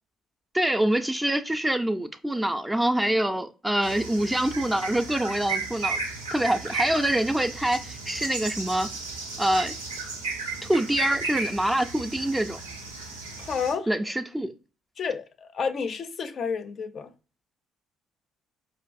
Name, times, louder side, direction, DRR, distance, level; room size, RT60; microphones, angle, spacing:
voice 1, 0.5-6.0 6.3-8.9 9.4-9.7 10.7-12.6 13.9-14.5, right 1 dB, 10° right, 0.3 m, -25 dB
sound 1, 3.8-13.7, right 4 dB, 90° right, 0.5 m, -34 dB
voice 2, 13.4-13.9 15.0-17.1, left 6 dB, 50° left, 0.4 m, -30 dB
4.5 x 2.4 x 2.4 m
hypercardioid pair, 45°, 0 cm